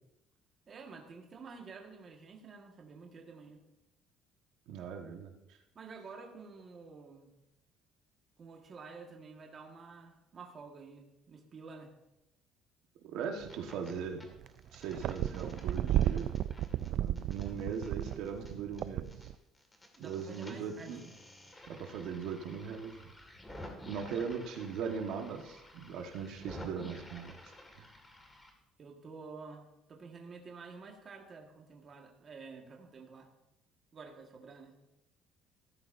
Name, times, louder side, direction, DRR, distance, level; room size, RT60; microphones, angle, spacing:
voice 1, 0.7-3.6 5.7-7.3 8.4-11.9 20.0-20.9 24.1-24.2 28.8-33.3 33.9-34.7, right 4 dB, 30° right, 2 dB, 1.5 m, -50 dB
voice 2, 4.7-5.3 13.0-14.3 14.7-16.3 16.9-19.1 20.0-21.0 21.7-23.0 23.8-27.5, right 6 dB, 70° right, 3 dB, 1.3 m, -39 dB
sound 1, 13.2-13.9 14.2-19.3 19.5-28.5, left 1 dB, 10° left, 1.8 m, -52 dB
sound 2, 13.4-14.0 14.4-19.3, right 12 dB, 55° right, 0.3 m, -33 dB
15.0 x 13.0 x 2.6 m, 0.89 s
cardioid pair, 160°, 0 cm